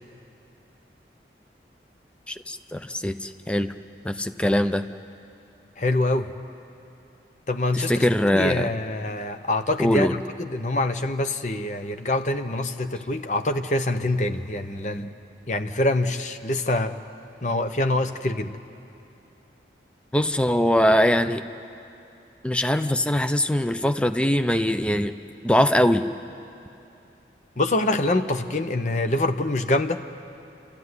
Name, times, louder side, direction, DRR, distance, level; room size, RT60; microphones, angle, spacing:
voice 1, 2.3-3.7 4.0-4.8 7.7-8.7 9.8-10.1 20.1-21.4 22.4-25.1 25.4-26.1, left 1 dB, 5° left, 9 dB, 0.5 m, -22 dB
voice 2, 5.8-6.3 7.5-15.1 15.5-16.9 17.4-18.5 27.6-30.0, left 2 dB, 45° left, 7 dB, 0.9 m, -25 dB
30.0 x 13.5 x 9.7 m, 2.8 s
head